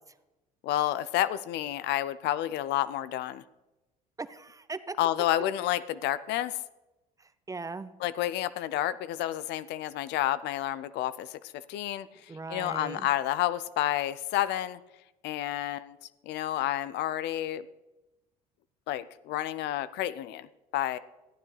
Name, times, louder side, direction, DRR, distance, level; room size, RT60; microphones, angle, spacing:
voice 1, 0.6-3.4 5.0-6.6 8.0-11.4 11.7-12.1 12.5-14.8 15.2-16.0 16.3-17.6 18.9-20.5 20.7-21.0, left 13 dB, 60° left, 15 dB, 0.5 m, -30 dB
voice 2, 4.2-4.9 7.2-7.9 12.3-13.1, right 3 dB, 15° right, 13 dB, 0.6 m, -39 dB
14.5 x 9.6 x 3.2 m, 1.0 s
hypercardioid pair, 65°, 20 cm